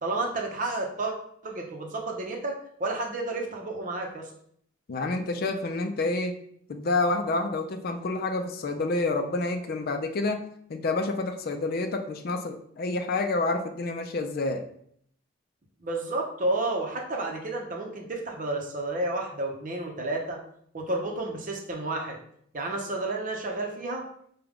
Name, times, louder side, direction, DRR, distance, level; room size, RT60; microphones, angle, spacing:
voice 1, 0.0-1.1 1.4-4.3 15.8-20.4 20.7-22.2 22.5-24.1, right 2 dB, 45° right, 1 dB, 0.7 m, -31 dB
voice 2, 4.9-6.4 6.7-10.4 10.7-14.6, left 2 dB, 50° left, 6 dB, 0.4 m, -28 dB
5.0 x 2.3 x 3.4 m, 0.66 s
head